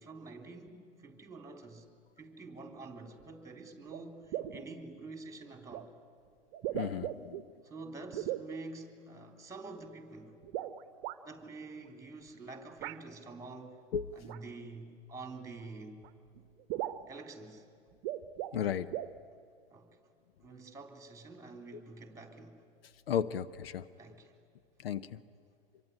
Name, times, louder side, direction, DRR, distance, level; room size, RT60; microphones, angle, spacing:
voice 1, 0.0-1.9 2.2-5.9 7.6-10.4 11.2-13.8 14.1-16.0 17.1-17.6 19.7-20.0 20.4-22.6 24.0-24.4, right 3 dB, 10° right, 5 dB, 3.3 m, -47 dB
sound 1, 3.2-3.3 3.9-4.0 4.3-4.7 5.7-5.9 6.5-7.4 8.1-8.5 10.4-11.2 12.8-13.0 14.2-14.4 15.6-15.7 16.0-16.1 16.4-16.5 16.7-17.1 17.9-18.6 18.9-19.2, right 13 dB, 40° right, 1.0 m, -38 dB
voice 2, 6.7-7.4 13.9-14.1 18.5-18.9 23.1-23.8 24.8-25.2, left 8 dB, 65° left, 15 dB, 0.7 m, -34 dB
25.5 x 23.5 x 9.9 m, 2.4 s
figure-of-eight pair, 95°, 32 cm